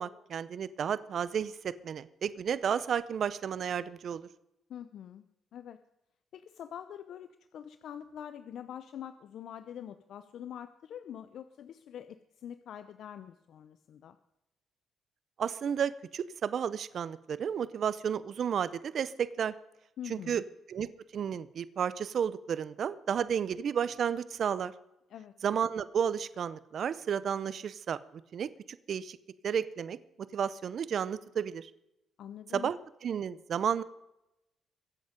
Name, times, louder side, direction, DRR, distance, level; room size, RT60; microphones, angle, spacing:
voice 1, 0.0-4.2 15.4-19.5 20.1-20.4 20.7-24.7 25.4-28.0 28.3-29.2 29.4-30.0 30.3-31.7 32.5-32.8 33.0-33.8, right 8 dB, 60° right, 16 dB, 0.7 m, -32 dB
voice 2, 4.7-5.2 5.5-5.8 6.3-14.2 20.0-20.4 25.1-25.3 32.2-32.7, left 9 dB, 70° left, 11 dB, 0.7 m, -45 dB
22.5 x 8.0 x 5.2 m, 0.90 s
cardioid pair, 90°, 0 cm